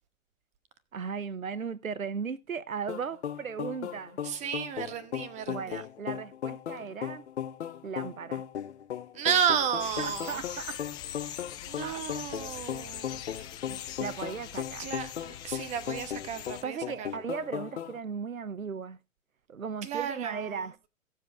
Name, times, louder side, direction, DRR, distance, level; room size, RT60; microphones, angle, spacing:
voice 1, 0.9-4.2 5.5-7.2 7.8-8.4 10.0-10.8 11.8-12.0 13.7-14.9 16.6-19.0 19.5-20.9, right 6 dB, 80° right, 0.8 m, -37 dB
sound 1, 2.9-18.0, left 9 dB, 55° left, 1.1 m, -37 dB
voice 2, 4.2-5.8 9.1-10.4 11.7-13.2 14.8-17.1 19.8-20.6, right 8 dB, 15° right, 1.0 m, -32 dB
sound 2, 9.8-16.6, left 11 dB, 10° left, 0.5 m, -42 dB
16.5 x 7.5 x 3.3 m
figure-of-eight pair, 115°, 41 cm